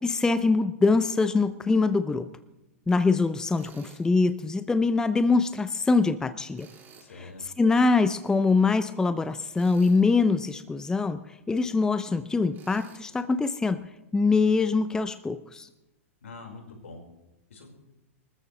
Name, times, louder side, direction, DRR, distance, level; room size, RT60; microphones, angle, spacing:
voice 1, 0.0-2.3 2.9-6.7 7.1-13.9 14.1-15.7, left 4 dB, 10° left, 13 dB, 0.6 m, -24 dB
Tools, 3.6-4.0 6.5-7.1 9.5-10.1 12.5-13.0, right 6 dB, 25° right, 3.3 m, -52 dB
voice 2, 7.0-7.5 16.2-17.0 17.5-17.7, left 3 dB, 70° left, 1 dB, 5.1 m, -44 dB
25.5 x 14.0 x 3.3 m, 0.99 s
figure-of-eight pair, 105°, 7 cm